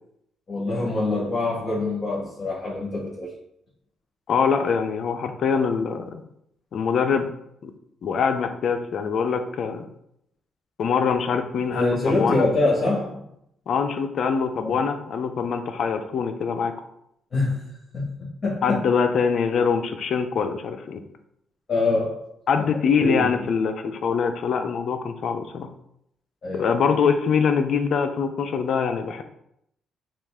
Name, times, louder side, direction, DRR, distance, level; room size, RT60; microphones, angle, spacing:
voice 1, 0.5-3.3 11.7-13.2 14.6-14.8 17.3-17.6 17.9-18.8 21.7-22.2 23.0-23.3 26.4-26.7, left 2 dB, 40° left, -7 dB, 1.8 m, -25 dB
voice 2, 4.3-6.2 6.7-7.3 7.6-7.7 8.0-9.8 10.8-12.5 13.7-16.7 18.6-21.0 22.5-25.7 26.5-29.2, left 6 dB, 60° left, 7 dB, 0.5 m, -23 dB
5.7 x 2.4 x 3.6 m, 0.75 s
cardioid pair, 90°, 0 cm